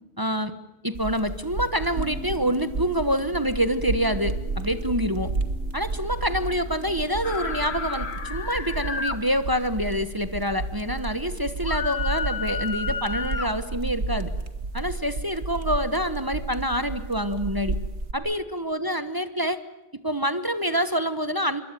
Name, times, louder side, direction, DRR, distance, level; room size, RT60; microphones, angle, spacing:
voice 1, 0.2-0.5 0.8-5.3 5.7-14.3 14.7-17.8 18.1-19.6 20.0-21.6, equal, 20° right, 10 dB, 1.2 m, -26 dB
sound 1, 0.9-18.1, right 3 dB, 65° right, 1.9 m, -32 dB
sound 2, 1.9-8.5, left 1 dB, 85° left, 6.5 m, -45 dB
sound 3, 7.2-9.2 11.6-13.5, left 5 dB, 60° left, 1.7 m, -31 dB
26.0 x 23.0 x 9.2 m, 0.94 s
omnidirectional pair, 1.3 m